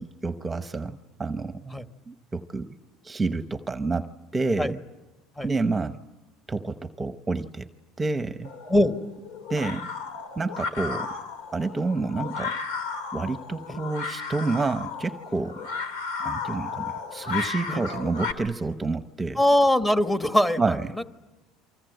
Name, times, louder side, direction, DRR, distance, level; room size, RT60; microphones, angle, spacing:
voice 1, 0.0-1.8 2.1-2.7 3.0-4.8 5.4-6.0 6.5-7.7 8.0-8.5 9.5-9.9 10.4-11.1 11.5-12.6 13.1-15.7 16.2-19.4 20.6-20.9, right 3 dB, 15° right, 10 dB, 0.8 m, -29 dB
sound 1, 8.4-18.3, left 5 dB, 85° left, 3.0 m, -34 dB
voice 2, 19.4-21.0, left 1 dB, 10° left, 9 dB, 1.4 m, -22 dB
29.0 x 24.5 x 7.9 m, 1.1 s
supercardioid pair, 115°, 0 cm